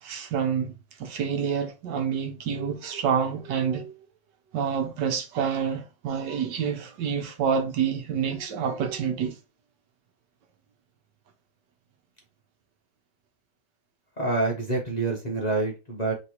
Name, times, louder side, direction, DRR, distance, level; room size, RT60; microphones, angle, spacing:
voice 1, 0.0-3.9 4.5-9.3, right 7 dB, 80° right, 1.5 m, -28 dB
voice 2, 14.2-16.1, right 3 dB, 35° left, 0.7 m, -27 dB
3.3 x 3.2 x 4.3 m
omnidirectional pair, 1.9 m